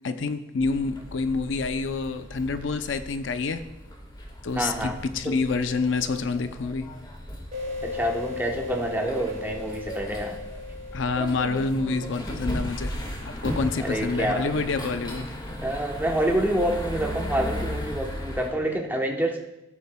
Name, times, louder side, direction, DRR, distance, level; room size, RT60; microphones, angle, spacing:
voice 1, 0.0-3.6 4.4-6.9 10.9-15.4, left 4 dB, 70° left, 0.5 m, -28 dB
sound 1, 0.6-18.5, equal, 25° left, 1.5 m, -36 dB
voice 2, 4.5-5.0 5.2-5.3 7.8-10.4 13.8-14.5 15.6-19.4, right 1 dB, 10° right, 1.0 m, -27 dB
sound 2, 7.5-12.8, left 3 dB, 45° right, 2.2 m, -37 dB
15.5 x 8.2 x 2.2 m
head